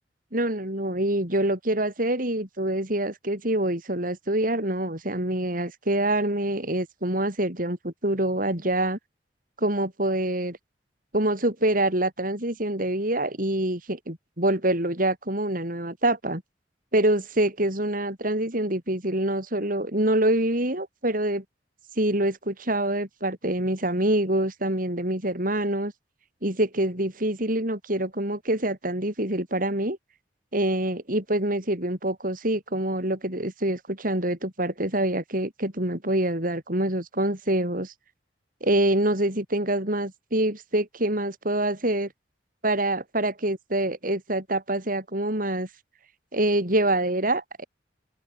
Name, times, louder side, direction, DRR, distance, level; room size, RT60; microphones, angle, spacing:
voice 1, 0.3-9.0 9.6-10.6 11.1-16.4 16.9-21.4 22.0-25.9 26.4-30.0 30.5-37.9 38.6-42.1 42.6-45.7 46.3-47.6, right 1 dB, 50° right, 6.1 m, -25 dB
head